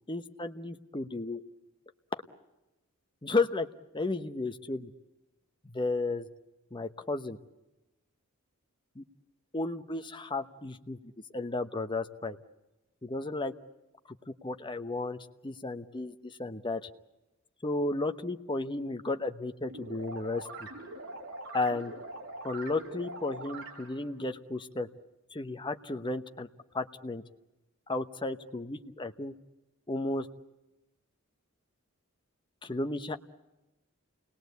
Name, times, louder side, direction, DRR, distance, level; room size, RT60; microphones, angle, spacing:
voice 1, 0.1-1.4 2.1-2.2 3.2-3.7 3.9-4.9 5.6-6.3 6.7-7.4 8.9-9.0 9.5-11.0 11.3-12.4 13.0-13.5 14.4-16.9 17.6-20.7 21.5-21.9 22.4-24.9 25.3-26.5 26.7-27.2 27.9-29.3 29.9-30.3 32.6-33.2, left 2 dB, 20° left, 8 dB, 1.0 m, -33 dB
sound 1, 19.7-24.1, right 2 dB, 75° right, 4.7 m, -43 dB
28.5 x 20.5 x 8.2 m, 1.0 s
head